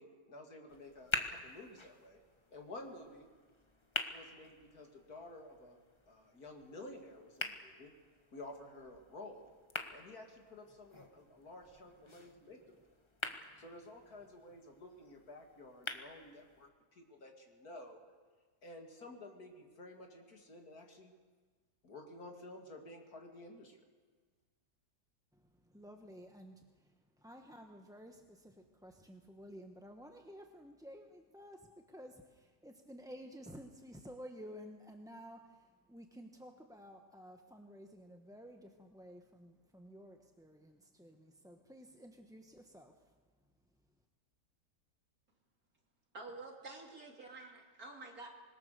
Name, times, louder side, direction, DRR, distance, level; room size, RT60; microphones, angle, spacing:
voice 1, 0.0-2.2 2.5-3.3 4.1-5.8 6.1-7.9 8.3-9.5 9.9-12.8 13.6-18.0 18.6-21.1 21.8-23.8, left 2 dB, 60° left, 3 dB, 3.0 m, -52 dB
sound 1, 0.7-16.7, left 2 dB, 20° left, 1.2 m, -46 dB
voice 2, 13.2-13.6 25.3-43.2, equal, 5° right, 3 dB, 0.9 m, -53 dB
voice 3, 46.1-48.3, right 3 dB, 60° right, 1 dB, 3.5 m, -49 dB
25.5 x 21.0 x 6.8 m, 1.4 s
omnidirectional pair, 1.8 m